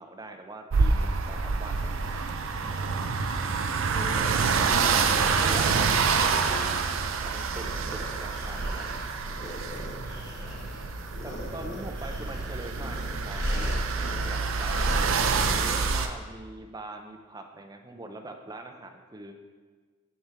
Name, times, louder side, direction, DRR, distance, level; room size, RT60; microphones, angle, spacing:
voice 1, 0.0-1.9 4.6-5.8 7.2-7.7 7.9-8.9 11.2-13.7 14.5-19.3, right 2 dB, 20° right, 5 dB, 0.5 m, -42 dB
sound 1, 0.7-16.1, right 5 dB, 70° right, 0.5 m, -27 dB
sound 2, 1.8-15.9, equal, 45° left, 1.3 m, -37 dB
voice 2, 3.9-5.0 5.5-6.8 8.0-8.6 14.0-14.3, left 1 dB, 25° left, -1 dB, 1.0 m, -44 dB
9.7 x 4.4 x 3.4 m, 1.5 s
head